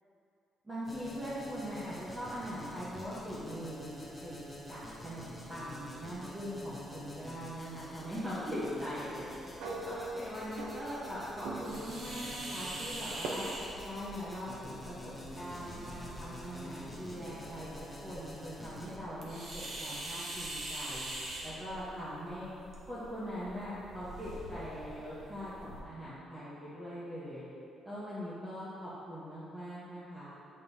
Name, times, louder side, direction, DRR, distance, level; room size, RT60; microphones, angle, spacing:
voice 1, 0.6-13.5 13.8-17.7 18.0-21.1 21.4-22.5 22.9-27.5 27.8-30.3, equal, 15° right, -11 dB, 1.1 m, -41 dB
sound 1, 0.8-19.0, left 1 dB, 5° left, 0.9 m, -48 dB
sound 2, 9.6-11.2 11.4-11.9 13.2-13.3, right 2 dB, 85° right, 0.7 m, -40 dB
sound 3, 11.6-25.8, right 1 dB, 45° right, 1.0 m, -44 dB
8.9 x 5.3 x 2.7 m, 2.8 s
cardioid pair, 155°, 0 cm